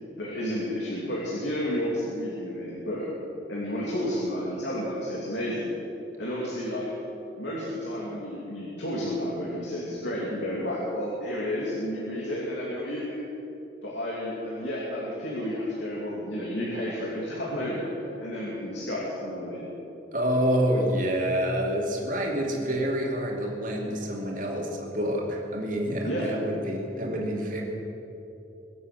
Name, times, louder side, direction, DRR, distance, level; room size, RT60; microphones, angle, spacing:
voice 1, 0.2-3.1 3.5-5.7 6.2-6.9 7.4-13.2 13.8-17.9 18.2-19.7 26.0-26.4, equal, 75° left, -5 dB, 2.8 m, -31 dB
voice 2, 20.1-27.6, equal, 45° right, 0 dB, 2.6 m, -27 dB
23.0 x 8.0 x 7.7 m, 2.9 s
head